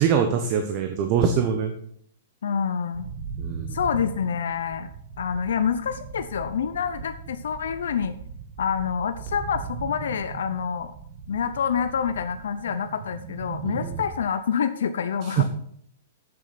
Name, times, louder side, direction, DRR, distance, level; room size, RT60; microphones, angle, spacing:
voice 1, 0.0-1.7 3.4-3.8 13.6-14.0 15.2-15.4, right 7 dB, 35° right, 6 dB, 1.0 m, -23 dB
voice 2, 2.4-3.1 3.7-4.9 5.2-8.1 8.6-10.9 11.3-15.4, left 7 dB, 85° left, 9 dB, 0.7 m, -27 dB
sound 1, 2.9-14.1, right 5 dB, 50° right, 2.1 m, -38 dB
8.1 x 7.7 x 5.9 m, 0.67 s
hypercardioid pair, 160°, 0 cm